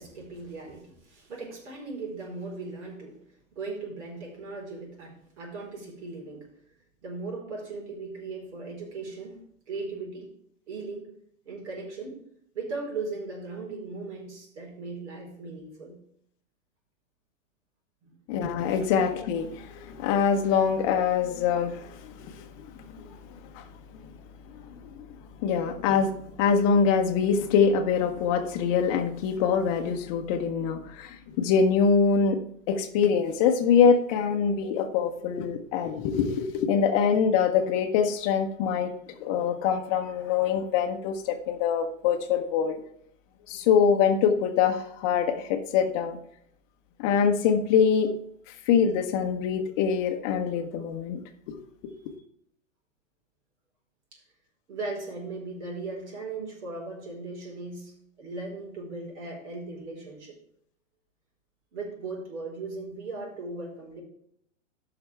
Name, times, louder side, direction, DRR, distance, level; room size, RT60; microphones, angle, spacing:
voice 1, 0.0-3.2 3.5-6.5 7.0-10.3 10.7-11.1 11.4-12.2 12.5-16.0 18.0-18.1 18.7-18.9 54.1-54.2 54.7-60.4 61.7-64.0, right 3 dB, 60° right, -1 dB, 4.2 m, -38 dB
voice 2, 18.3-22.5 23.0-23.2 23.5-23.6 24.5-25.1 25.4-26.1 26.4-32.4 32.7-38.9 39.2-42.8 43.5-46.2 47.0-48.1 48.7-51.2 51.5-51.6, left 6 dB, 25° left, 6 dB, 0.9 m, -24 dB
13.5 x 5.9 x 3.4 m, 0.69 s
hypercardioid pair, 155°, 39 cm